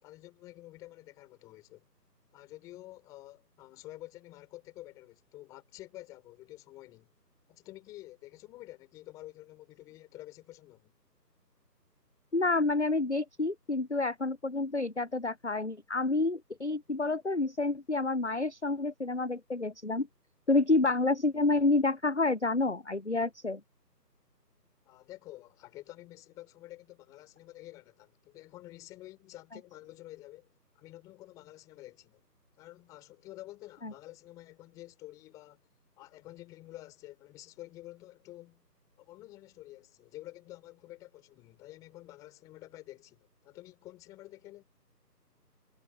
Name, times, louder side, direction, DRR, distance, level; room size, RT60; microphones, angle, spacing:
voice 1, 0.0-1.9 2.3-7.1 7.5-10.9 24.8-30.5 30.7-32.2 32.6-35.6 36.0-38.6 39.0-44.6, left 16 dB, 5° left, 4.1 m, -50 dB
voice 2, 12.3-20.1 20.5-23.6, left 3 dB, 45° left, 0.5 m, -29 dB
figure-of-eight pair, 165°, 50 cm